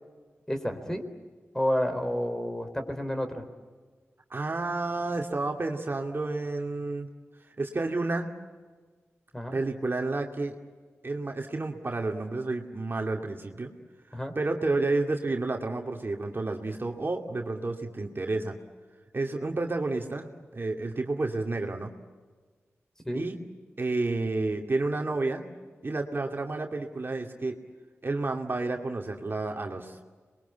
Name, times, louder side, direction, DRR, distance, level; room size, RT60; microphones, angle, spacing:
voice 1, 0.5-1.0 1.5-3.4 9.3-9.6 14.1-14.3 23.1-23.2, equal, 10° left, 7 dB, 4.1 m, -30 dB
voice 2, 4.3-7.1 7.6-8.3 9.5-10.6 11.0-13.7 14.1-18.6 19.1-20.3 20.5-21.9 23.1-23.4 23.8-25.4 25.8-27.5 28.0-30.0, right 2 dB, 45° right, 2 dB, 2.6 m, -30 dB
27.0 x 22.5 x 8.3 m, 1.4 s
cardioid pair, 45°, 5 cm